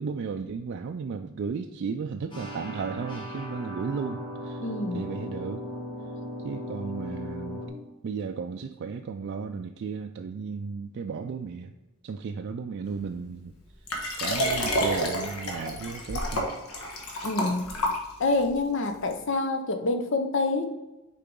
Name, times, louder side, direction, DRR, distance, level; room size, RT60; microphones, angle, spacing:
voice 1, 0.0-4.7 4.9-5.6 6.4-7.6 8.0-11.7 12.0-13.6 14.2-16.5, right 5 dB, 55° right, 5 dB, 0.3 m, -34 dB
sound 1, 2.3-7.7, equal, 20° left, 1.4 m, -37 dB
voice 2, 4.6-5.0 17.2-17.6 18.2-20.7, left 3 dB, 55° left, 6 dB, 0.7 m, -27 dB
Liquid, 13.9-18.5 19.1-19.2, equal, 85° left, 1.3 m, -29 dB
6.8 x 4.6 x 3.7 m, 1.1 s
head